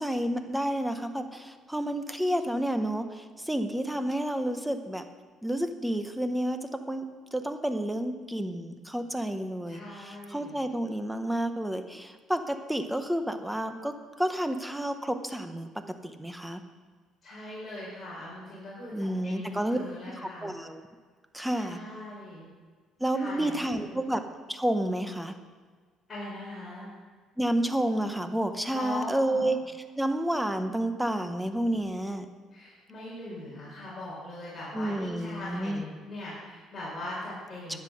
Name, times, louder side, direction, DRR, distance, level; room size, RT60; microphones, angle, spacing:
voice 1, 0.0-5.0 5.4-15.7 16.0-16.6 18.9-19.8 20.2-20.8 21.3-21.8 23.0-24.2 24.5-25.3 27.4-29.6 30.0-32.3 34.7-35.8 37.7-37.8, right 1 dB, 5° right, 7 dB, 0.8 m, -30 dB
voice 2, 9.7-10.6 17.2-20.5 21.5-22.5 23.1-24.0 26.1-26.9 28.7-29.5 32.5-37.8, left 1 dB, 20° left, -7 dB, 4.7 m, -40 dB
12.0 x 9.6 x 6.3 m, 1.5 s
cardioid pair, 160°, 0 cm